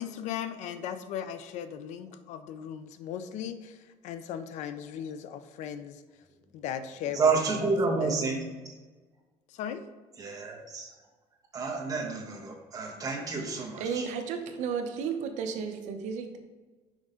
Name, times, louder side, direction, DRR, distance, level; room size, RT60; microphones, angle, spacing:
voice 1, 0.0-6.0 6.5-8.2 9.5-9.8 13.2-13.3, left 9 dB, 70° left, 0.5 m, -37 dB
voice 2, 7.1-8.7 10.2-10.9 11.5-14.0, right 4 dB, 30° right, 1.2 m, -29 dB
voice 3, 13.8-16.4, right 6 dB, 70° right, 0.8 m, -33 dB
6.2 x 5.3 x 3.7 m
cardioid pair, 145°, 13 cm